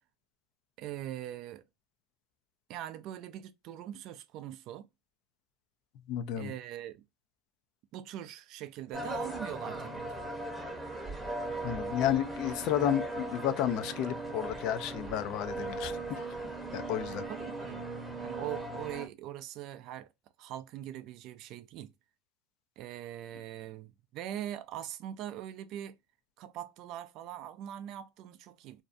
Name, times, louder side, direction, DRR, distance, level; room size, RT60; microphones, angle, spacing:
voice 1, 0.8-1.6 2.7-4.9 6.4-7.0 7.9-10.2 17.3-17.8 18.2-20.1 20.4-21.9 22.8-26.0 26.4-28.8, right 12 dB, 50° right, 0.3 m, -42 dB
voice 2, 6.1-6.5 11.6-17.3, left 11 dB, 55° left, 0.4 m, -32 dB
sound 1, 8.9-19.1, right 2 dB, ahead, 0.7 m, -38 dB
2.5 x 2.2 x 2.4 m
supercardioid pair, 120°, 0 cm